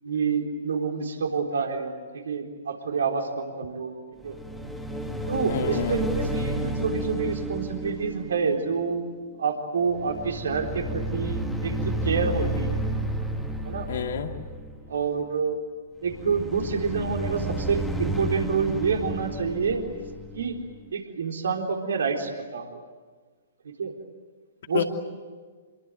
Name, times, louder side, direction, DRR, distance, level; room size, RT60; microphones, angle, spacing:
voice 1, 0.0-4.0 4.2-4.4 5.3-9.1 9.4-12.8 13.6-13.9 14.9-15.6 16.0-19.8 20.3-20.6 20.9-22.8 23.8-23.9 24.7-24.8, right 5 dB, 65° right, 3 dB, 3.8 m, -28 dB
sound 1, 4.2-9.6 9.8-15.1 16.0-20.9, right 1 dB, ahead, 2.4 m, -31 dB
voice 2, 5.5-6.0 13.9-14.3 24.7-24.8, left 8 dB, 60° left, 5 dB, 2.4 m, -28 dB
27.0 x 22.5 x 9.1 m, 1.5 s
figure-of-eight pair, 120°, 0 cm